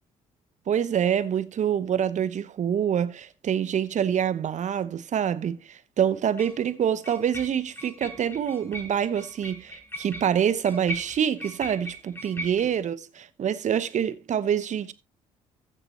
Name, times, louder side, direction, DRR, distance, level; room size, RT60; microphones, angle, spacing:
voice 1, 0.7-14.9, right 9 dB, 45° right, 1.0 m, -26 dB
sound 1, 6.4-6.6 7.0-12.8, equal, 15° left, 3.7 m, -39 dB
15.0 x 7.3 x 2.9 m
hypercardioid pair, 50°, 17 cm